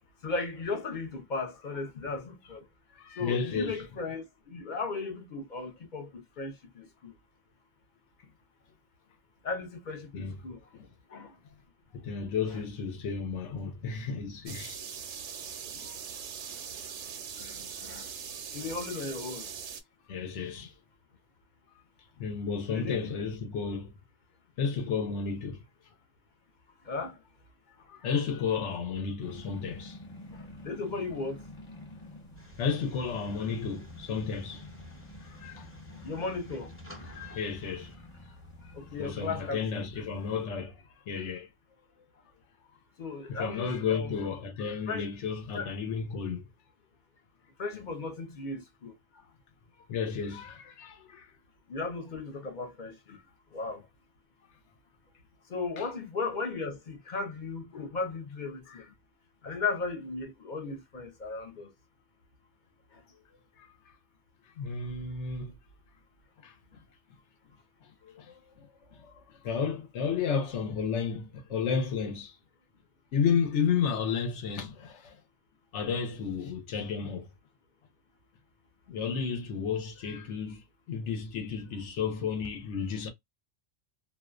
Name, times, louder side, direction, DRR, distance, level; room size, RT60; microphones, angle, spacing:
voice 1, 0.2-2.6 3.2-6.9 9.4-10.6 11.1-11.3 17.4-17.5 17.8-18.1 18.5-19.5 22.7-23.1 26.9-27.1 30.6-31.4 36.0-36.7 38.8-39.8 43.0-44.3 44.9-45.1 45.5-45.7 47.6-48.9 51.7-52.9 53.5-53.8 55.5-58.8 59.4-61.7, left 4 dB, 55° left, 0.6 m, -36 dB
voice 2, 3.0-3.8 10.1-10.4 10.7-10.9 11.9-14.8 15.7-16.0 17.4-17.6 20.1-20.7 22.2-23.9 24.6-25.6 27.9-30.0 32.6-34.7 35.2-35.7 37.0-37.9 38.6-41.5 43.3-46.5 49.1-49.3 49.9-51.3 55.8-55.9 63.6-63.7 64.6-65.5 66.4-66.5 68.0-72.4 73.1-75.2 75.7-77.3 78.9-83.1, left 6 dB, 75° left, 1.0 m, -32 dB
sound 1, 14.5-19.8, right 7 dB, 80° right, 0.9 m, -41 dB
sound 2, 29.2-40.5, left 2 dB, 30° left, 1.1 m, -49 dB
sound 3, 32.3-38.0, right 1 dB, 15° left, 0.6 m, -51 dB
2.5 x 2.1 x 2.3 m
omnidirectional pair, 1.2 m